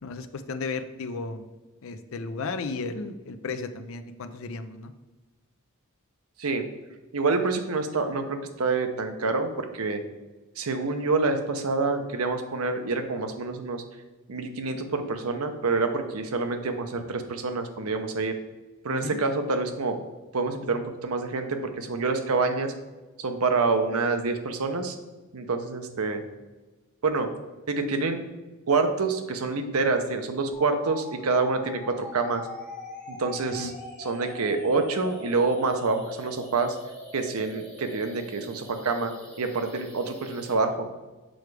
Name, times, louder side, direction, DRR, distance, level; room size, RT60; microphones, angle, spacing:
voice 1, 0.0-1.5 1.8-4.9 18.9-19.2 33.4-33.7, left 3 dB, 65° left, 10 dB, 0.5 m, -34 dB
voice 2, 7.1-10.0 10.6-13.8 14.3-18.3 18.8-20.0 20.3-22.7 23.2-25.0 25.3-26.2 27.0-27.3 27.7-28.2 28.7-32.4 33.1-33.7 34.0-36.8 37.1-39.1 39.4-40.9, right 3 dB, 85° right, 7 dB, 0.7 m, -27 dB
sound 1, 30.5-40.5, left 1 dB, 5° left, 1.7 m, -43 dB
6.4 x 4.7 x 3.3 m, 1.2 s
head